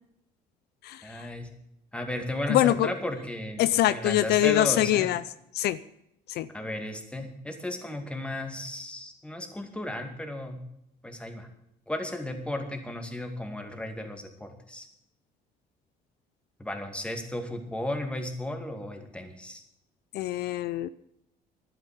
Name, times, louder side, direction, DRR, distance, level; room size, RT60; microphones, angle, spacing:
voice 1, 1.0-1.5 1.9-3.6 3.9-5.1 6.5-10.6 11.0-11.5 11.9-14.9 16.6-19.6, left 1 dB, 5° left, 5 dB, 2.3 m, -34 dB
voice 2, 2.5-2.9 3.6-5.2 5.5-5.8 6.3-6.5 20.1-20.9, left 14 dB, 75° left, 15 dB, 0.6 m, -24 dB
12.0 x 9.5 x 8.3 m, 0.79 s
cardioid pair, 110°, 17 cm